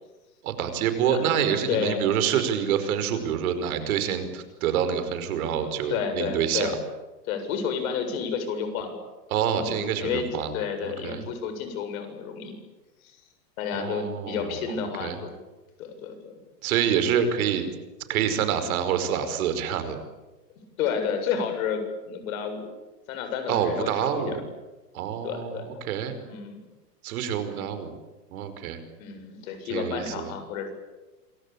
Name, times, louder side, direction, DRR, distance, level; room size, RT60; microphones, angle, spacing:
voice 1, 0.4-6.7 9.3-10.5 10.8-11.2 13.7-14.4 15.0-15.2 16.6-17.6 18.1-20.0 23.5-24.4 24.9-25.6 25.9-26.2 27.0-27.9 28.3-28.8 29.7-30.3, right 8 dB, 60° right, 10 dB, 5.3 m, -26 dB
voice 2, 1.1-2.0 5.9-6.8 7.3-9.0 9.5-10.3 10.5-12.5 13.6-15.3 15.8-16.3 20.8-22.7 23.1-24.4 25.2-25.7 26.2-26.6 27.5-27.6 29.0-30.7, left 6 dB, 55° left, 7 dB, 7.6 m, -31 dB
27.5 x 24.0 x 8.7 m, 1.1 s
hypercardioid pair, 120°, 49 cm